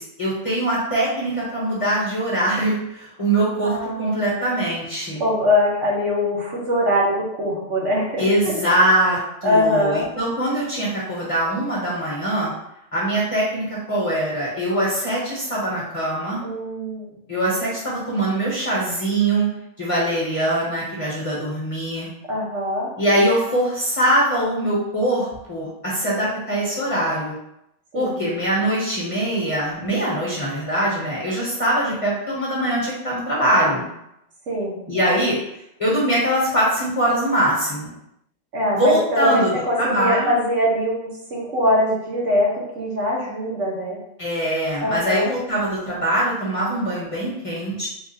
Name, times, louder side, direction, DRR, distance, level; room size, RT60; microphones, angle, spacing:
voice 1, 0.0-5.2 8.2-12.5 12.9-16.4 17.3-19.5 19.8-22.1 23.0-27.4 27.9-33.9 34.9-35.4 35.8-37.9 38.7-39.5 39.8-40.3 44.2-47.9, right 1 dB, 30° left, -5 dB, 0.8 m, -22 dB
voice 2, 3.6-4.4 5.2-8.5 9.4-10.0 16.4-17.2 22.3-22.9 27.9-28.2 34.5-34.8 38.5-44.0 44.8-45.3, left 1 dB, 75° right, -3 dB, 1.3 m, -22 dB
3.6 x 2.3 x 2.7 m, 0.82 s
omnidirectional pair, 1.3 m